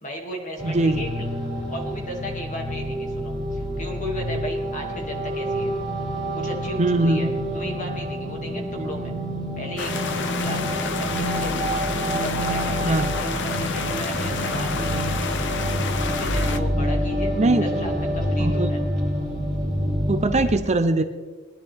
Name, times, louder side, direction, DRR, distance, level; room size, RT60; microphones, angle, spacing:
voice 1, 0.0-1.3 1.7-5.7 6.3-9.1 9.6-11.7 12.2-15.5 16.2-18.8, equal, 40° left, 1 dB, 2.4 m, -35 dB
sound 1, 0.6-20.5, equal, ahead, 3.9 m, -27 dB
voice 2, 0.6-1.0 6.8-7.3 8.8-8.9 12.8-13.1 17.4-17.9 18.4-18.7 20.1-21.0, right 2 dB, 35° right, 8 dB, 0.7 m, -21 dB
sound 2, 9.8-16.6, left 5 dB, 60° left, 0.7 m, -30 dB
20.5 x 10.5 x 3.6 m, 1.4 s
head